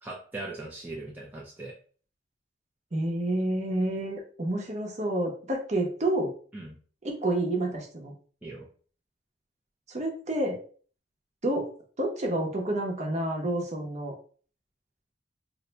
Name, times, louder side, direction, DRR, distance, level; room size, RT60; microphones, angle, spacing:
voice 1, 0.0-1.7 6.5-6.7 8.4-8.7, right 2 dB, 10° right, -4 dB, 0.4 m, -39 dB
voice 2, 2.9-6.3 7.0-8.1 9.9-10.6 11.4-11.7 12.0-14.1, right 1 dB, 35° right, 1 dB, 0.8 m, -29 dB
2.7 x 2.1 x 4.0 m, 0.43 s
head